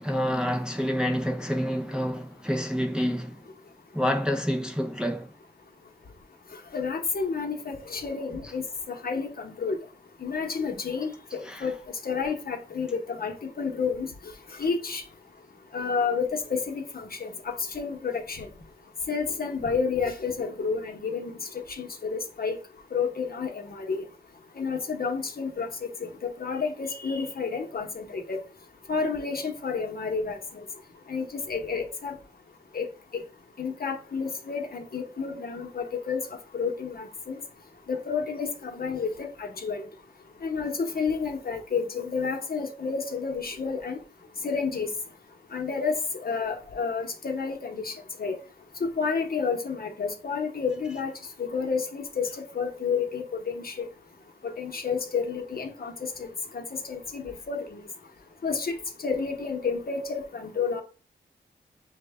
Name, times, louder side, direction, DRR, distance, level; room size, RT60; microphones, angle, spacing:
voice 1, 0.0-3.4 3.9-5.3 11.4-11.7, equal, 5° right, 0.5 m, -28 dB
voice 2, 6.7-9.8 10.2-11.7 12.0-14.1 14.6-15.0 15.7-18.5 19.1-22.6 22.9-24.0 24.6-28.4 28.9-30.6 31.1-32.2 32.7-32.9 33.1-33.2 33.6-36.2 36.5-37.4 37.9-39.8 40.4-44.0 44.4-44.9 45.5-47.9 48.2-48.4 48.8-51.1 51.4-53.9 54.4-57.8 58.4-58.7 59.0-60.8, left 5 dB, 55° left, 0.8 m, -30 dB
6.2 x 2.1 x 3.4 m
wide cardioid pair, 80°, 19 cm